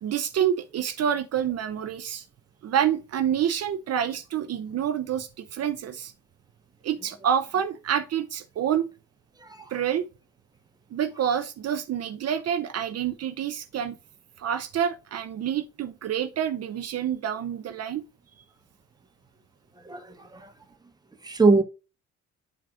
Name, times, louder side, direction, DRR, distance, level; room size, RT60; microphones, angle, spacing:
voice 1, 0.0-2.2 2.6-6.1 6.8-8.9 9.7-10.0 10.9-14.0 14.4-18.0, right 9 dB, 55° right, 0.7 m, -27 dB
voice 2, 19.9-20.4 21.2-21.6, right 3 dB, 15° right, 1.1 m, -22 dB
10.5 x 4.2 x 2.5 m
cardioid pair, 90°, 30 cm